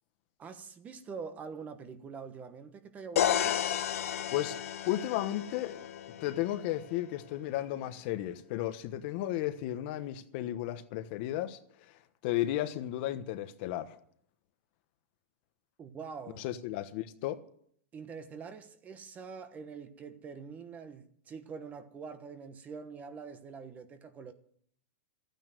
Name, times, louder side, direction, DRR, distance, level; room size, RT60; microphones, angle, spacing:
voice 1, 0.4-3.6 15.8-16.5 17.9-24.3, right 5 dB, 20° right, 1.2 m, -45 dB
sound 1, 3.2-7.0, left 10 dB, 80° left, 1.3 m, -33 dB
voice 2, 4.9-5.8 6.2-14.0 16.4-17.4, left 13 dB, 45° left, 1.2 m, -34 dB
13.5 x 9.3 x 9.2 m
hypercardioid pair, 145°, 7 cm